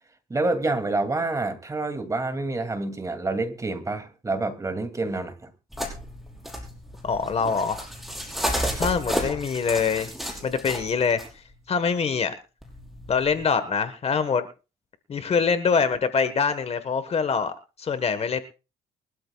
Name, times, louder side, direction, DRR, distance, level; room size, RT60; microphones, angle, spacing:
voice 1, 0.3-5.5, right 2 dB, 20° right, 2.6 m, -27 dB
sound 1, 5.7-11.3 12.6-13.4, equal, ahead, 5.3 m, -32 dB
voice 2, 7.0-7.8 8.8-10.1 10.4-11.2 11.7-12.3 13.1-14.5 15.1-17.5 17.8-18.4, left 5 dB, 35° left, 1.4 m, -24 dB
23.0 x 13.0 x 2.4 m
cardioid pair, 110°, 17 cm